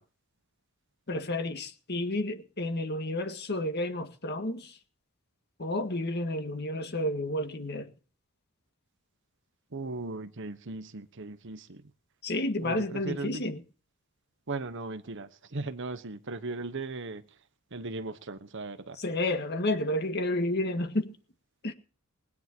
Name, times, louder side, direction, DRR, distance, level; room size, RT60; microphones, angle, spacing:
voice 1, 1.1-4.8 5.6-7.9 12.2-13.6 19.0-21.2 21.6-21.7, left 1 dB, 50° left, 1.8 m, -31 dB
voice 2, 9.7-11.8 12.6-13.4 14.5-17.3 17.7-19.0, right 3 dB, 60° right, 1.1 m, -37 dB
20.5 x 9.7 x 4.5 m
head